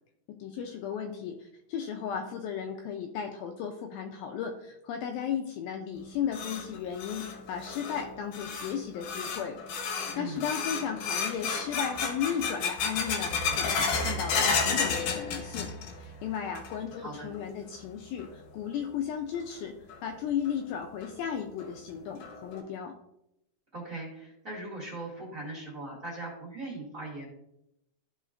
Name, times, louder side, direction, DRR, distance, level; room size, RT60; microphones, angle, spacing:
voice 1, 0.3-9.6 9.9-15.7 16.0-23.0, left 8 dB, 80° left, 4 dB, 2.2 m, -35 dB
sound 1, 5.9-16.1 16.3-17.0 17.3-17.4 18.2-18.3 19.9-20.0 20.5-20.6 21.0-21.1 21.6-21.7 22.2-22.6, left 5 dB, 65° left, 2.2 m, -32 dB
voice 2, 10.1-10.5 17.0-17.3 23.7-27.2, right 2 dB, 25° right, -4 dB, 2.1 m, -39 dB
14.0 x 5.0 x 2.5 m, 0.81 s
omnidirectional pair, 4.5 m